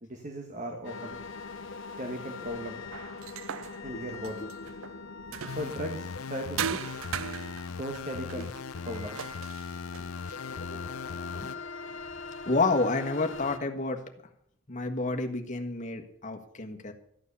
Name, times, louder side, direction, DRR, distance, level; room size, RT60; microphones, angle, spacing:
voice 1, 0.0-1.2 2.0-2.8 3.8-4.5 5.5-7.0 7.7-8.5 8.8-9.2, equal, 35° right, 4 dB, 1.5 m, -37 dB
sound 1, 0.8-13.6, left 4 dB, 60° left, 1.1 m, -42 dB
sound 2, 2.9-5.9 6.6-10.4, right 8 dB, 70° right, 0.5 m, -39 dB
sound 3, 5.5-11.6, left 5 dB, 85° left, 0.5 m, -39 dB
voice 2, 12.4-14.0 14.7-16.9, left 3 dB, 35° left, 3 dB, 1.5 m, -29 dB
14.0 x 9.4 x 6.9 m, 0.70 s
head